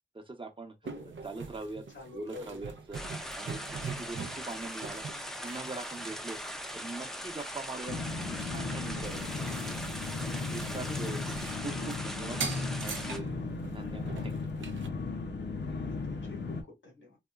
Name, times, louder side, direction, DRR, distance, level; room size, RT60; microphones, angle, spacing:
voice 1, 0.1-0.8 1.2-1.9 2.1-3.0 3.3-5.0 5.4-6.4 6.7-9.8 10.5-11.4 11.6-12.4 12.8-13.3 13.7-14.3, right 3 dB, 25° right, 0.7 m, -42 dB
sound 1, 0.8-7.0 7.4-12.0 12.3-14.9, right 5 dB, 85° right, 0.4 m, -43 dB
voice 2, 1.9-2.6 10.9-11.4 13.8-13.9 15.8-17.2, left 3 dB, 90° left, 1.4 m, -48 dB
sound 2, 2.9-13.2, equal, ahead, 0.5 m, -40 dB
sound 3, 7.9-16.6, left 3 dB, 65° left, 0.5 m, -36 dB
2.8 x 2.2 x 2.3 m
cardioid pair, 50°, 19 cm